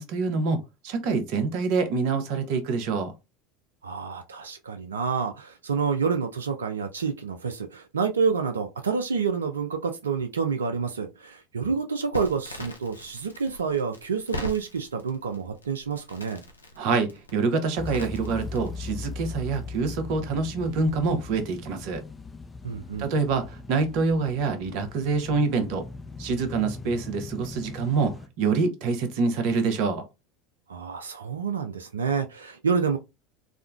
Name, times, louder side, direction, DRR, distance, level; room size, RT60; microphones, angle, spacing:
voice 1, 0.0-3.1 16.8-22.0 23.0-25.9 26.2-30.1, right 4 dB, 60° right, 0.7 m, -26 dB
voice 2, 3.8-16.4 22.6-23.1 30.7-33.0, right 5 dB, 80° right, 0.3 m, -28 dB
Crackle, 12.1-18.9, left 1 dB, 90° left, 0.5 m, -41 dB
sound 1, 17.8-28.3, left 3 dB, 15° left, 0.5 m, -39 dB
3.5 x 2.1 x 2.3 m
figure-of-eight pair, 75°, 0 cm